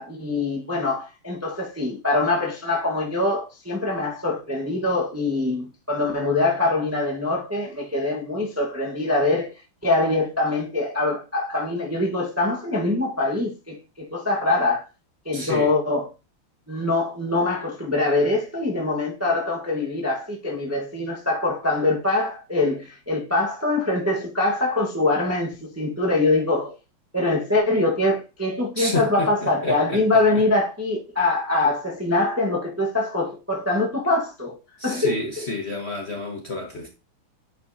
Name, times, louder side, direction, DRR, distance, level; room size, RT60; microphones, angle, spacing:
voice 1, 0.0-9.5 9.8-14.8 15.2-16.1 16.7-26.8 27.1-34.6 34.8-35.5, left 2 dB, 10° right, 0.7 m, -23 dB
voice 2, 15.3-15.7 28.8-30.0 34.8-36.9, left 3 dB, 40° left, 1.0 m, -30 dB
9.0 x 5.2 x 2.7 m
omnidirectional pair, 2.4 m